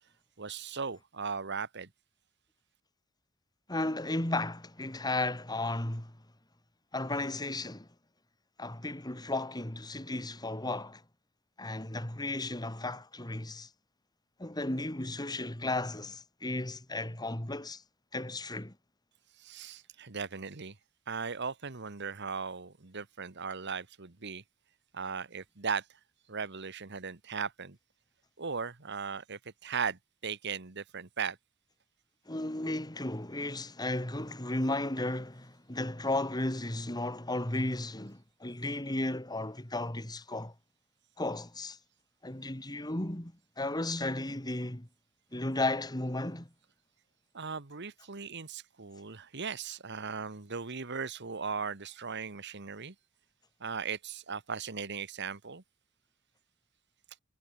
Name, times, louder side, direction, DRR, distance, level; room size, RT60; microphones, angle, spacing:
voice 1, 0.4-1.9 19.4-20.8 21.1-24.4 24.9-25.9 26.3-27.8 28.4-31.4 47.3-52.9 53.6-55.6, right 5 dB, 55° right, 1.5 m, -38 dB
voice 2, 3.7-6.2 6.9-7.9 8.6-11.0 11.6-13.7 14.4-17.8 18.1-18.7 32.3-40.5 41.2-41.8 42.2-44.9 45.3-46.5, left 2 dB, 20° left, 2.5 m, -34 dB
head